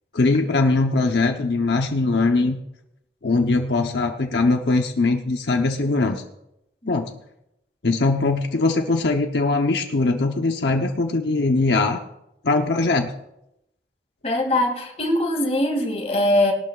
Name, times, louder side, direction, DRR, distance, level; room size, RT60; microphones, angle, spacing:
voice 1, 0.1-2.6 3.2-6.2 6.9-7.1 7.8-12.0 12.4-13.1, left 3 dB, 80° left, 3 dB, 0.9 m, -21 dB
voice 2, 14.2-16.5, left 1 dB, 35° left, 1 dB, 2.5 m, -21 dB
20.5 x 12.0 x 2.4 m, 0.84 s
head